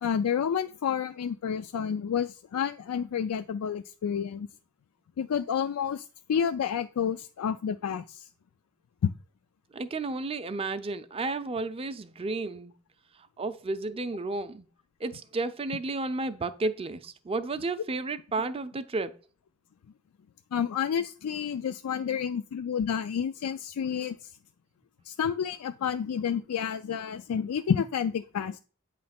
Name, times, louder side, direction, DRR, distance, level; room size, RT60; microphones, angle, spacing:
voice 1, 0.0-4.5 5.2-8.3 9.0-9.1 20.5-24.4 25.0-28.6, left 7 dB, 85° left, 0.3 m, -30 dB
voice 2, 9.7-12.7 13.2-14.7 15.0-19.2, right 3 dB, 25° right, 0.4 m, -32 dB
8.6 x 3.2 x 5.7 m
head